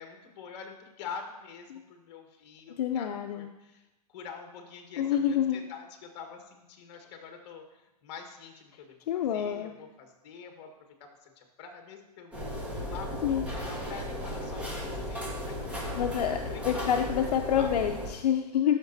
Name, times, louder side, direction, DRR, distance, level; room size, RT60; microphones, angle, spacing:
voice 1, 0.0-3.8 4.1-10.7 11.0-16.1 16.5-17.7, left 6 dB, 40° left, 4 dB, 1.3 m, -46 dB
voice 2, 2.8-3.5 5.0-5.6 9.1-9.7 13.2-13.4 16.0-18.8, left 9 dB, 70° left, 4 dB, 0.6 m, -27 dB
sound 1, 12.3-18.1, equal, 5° right, 1.0 m, -35 dB
12.0 x 5.9 x 2.7 m, 1.0 s
hypercardioid pair, 155°, 21 cm